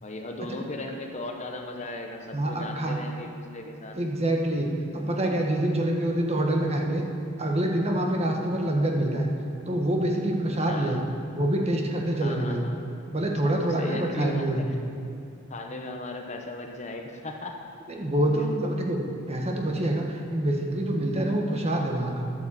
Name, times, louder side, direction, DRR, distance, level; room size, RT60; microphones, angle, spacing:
voice 1, 0.0-4.0 10.7-11.0 12.2-12.8 13.4-14.8 15.5-17.7, left 2 dB, 35° left, 3 dB, 0.9 m, -37 dB
voice 2, 2.3-3.0 3.9-7.0 7.4-9.3 9.7-11.0 11.3-12.6 13.1-14.7 17.9-19.0 19.3-22.2, right 1 dB, 30° right, 1 dB, 1.4 m, -26 dB
11.5 x 9.0 x 7.4 m, 2.5 s
head